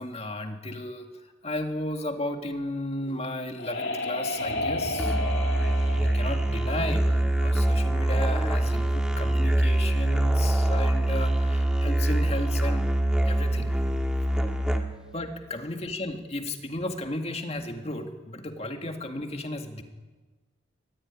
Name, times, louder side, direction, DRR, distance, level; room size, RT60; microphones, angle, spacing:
voice 1, 0.0-5.2 5.9-12.9 13.2-13.8 15.1-19.8, left 1 dB, 30° left, 5 dB, 2.1 m, -34 dB
sound 1, 3.0-7.6, left 1 dB, 65° left, 3.1 m, -33 dB
Musical instrument, 5.0-15.1, right 1 dB, 5° right, 2.0 m, -24 dB
23.5 x 22.5 x 9.9 m, 1.3 s
head